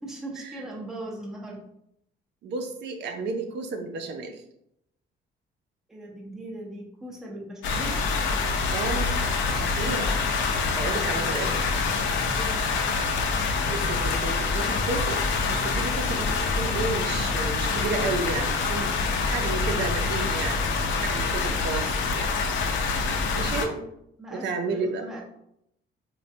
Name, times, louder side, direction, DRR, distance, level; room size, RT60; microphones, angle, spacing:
voice 1, 0.0-1.6 5.9-8.0 12.3-12.6 23.7-23.8 24.2-25.2, right 1 dB, 5° right, -2 dB, 0.5 m, -39 dB
voice 2, 2.4-4.4 8.7-9.1 9.5-10.1 10.8-11.5 13.7-18.9 19.3-20.6 21.0-22.3 23.3-23.8 24.3-25.0, right 3 dB, 65° right, 4 dB, 0.5 m, -32 dB
sound 1, 7.6-23.7, left 4 dB, 75° left, 0.5 m, -26 dB
4.2 x 2.2 x 2.6 m, 0.77 s
cardioid pair, 175°, 19 cm